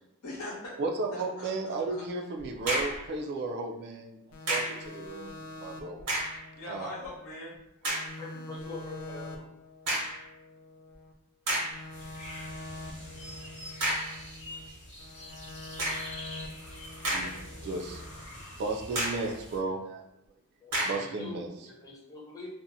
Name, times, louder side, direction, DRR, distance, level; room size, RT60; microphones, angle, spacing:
voice 1, 0.2-0.8 1.1-1.5 1.9-2.0 6.6-7.6, left 1 dB, 85° left, -4 dB, 0.9 m, -40 dB
voice 2, 0.8-4.2 4.5-6.0 6.7-6.9 17.1-18.0 18.6-20.0 20.8-21.5, right 3 dB, 45° right, 2 dB, 0.3 m, -34 dB
sound 1, 2.4-3.1 4.5-4.8 6.0-6.4 7.0-7.1 7.8-8.2 9.9-10.2 10.9-11.0 11.5-11.8 13.8-14.2 15.8-16.2 16.8-17.6 18.0-18.1 18.9-19.3 20.7-21.1, right 1 dB, 90° right, 0.9 m, -31 dB
sound 2, 4.3-7.6 7.9-11.1 11.5-14.7 15.0-18.2, left 2 dB, 70° left, 0.4 m, -45 dB
voice 3, 8.2-9.5 20.6-22.5, left 3 dB, 15° left, -5 dB, 0.6 m, -44 dB
sound 3, 11.9-19.6, left 1 dB, 30° left, 0.9 m, -45 dB
2.6 x 2.0 x 2.6 m, 0.80 s
head